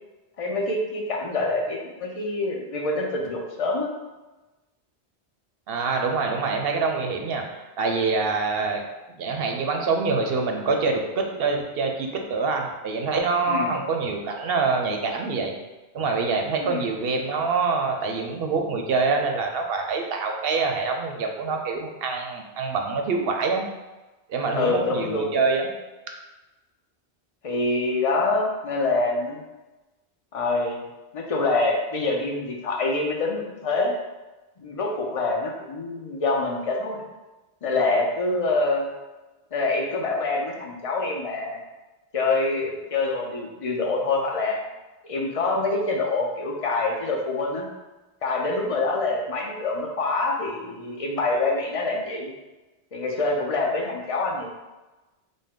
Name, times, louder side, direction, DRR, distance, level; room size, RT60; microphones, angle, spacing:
voice 1, 0.4-3.9 13.5-13.7 16.6-16.8 24.5-25.3 27.4-29.4 30.3-30.8 31.1-33.9 34.6-37.0 37.6-38.9 39.5-41.6 42.1-44.6 45.0-47.7 48.2-52.3 52.9-54.5, left 3 dB, 40° left, 0 dB, 0.6 m, -25 dB
voice 2, 5.7-8.8 9.2-15.5 15.9-23.6 24.3-25.7, right 4 dB, 65° right, 3 dB, 0.8 m, -25 dB
5.2 x 2.1 x 3.6 m, 1.1 s
omnidirectional pair, 1.1 m